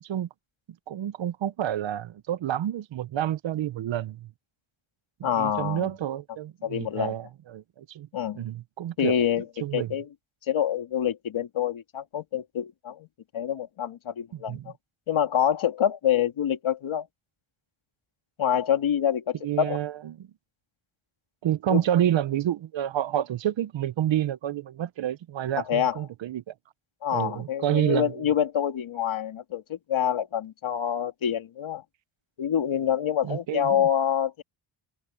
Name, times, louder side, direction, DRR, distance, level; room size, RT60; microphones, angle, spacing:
voice 1, 0.9-4.3 5.2-8.1 8.3-9.2 9.6-9.9 14.3-14.7 19.4-20.3 21.4-26.4 27.1-28.2 33.2-33.9, right 11 dB, 65° right, 0.9 m, -29 dB
voice 2, 5.2-5.9 6.6-7.1 8.1-8.4 9.0-9.5 9.7-10.1 10.5-13.1 13.3-14.6 15.1-17.1 18.4-19.8 21.7-21.8 25.5-26.0 27.0-31.8 32.4-34.4, left 9 dB, 70° left, 2.9 m, -26 dB
cardioid pair, 100°, 50 cm